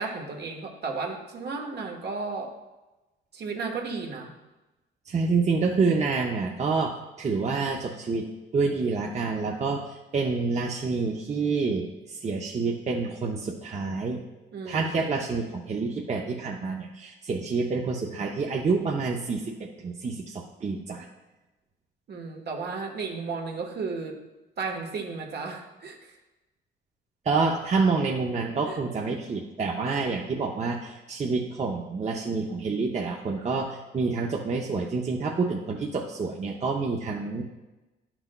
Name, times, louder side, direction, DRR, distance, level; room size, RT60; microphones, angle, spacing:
voice 1, 0.0-2.5 3.3-4.3 14.5-15.2 22.1-24.1 24.6-26.0 28.7-28.8, right 4 dB, 55° right, 2 dB, 1.2 m, -34 dB
voice 2, 5.1-8.3 8.5-14.2 14.6-21.1 27.3-37.4, right 4 dB, 35° right, 0 dB, 0.7 m, -28 dB
10.5 x 6.0 x 2.2 m, 1.1 s
cardioid pair, 90°, 20 cm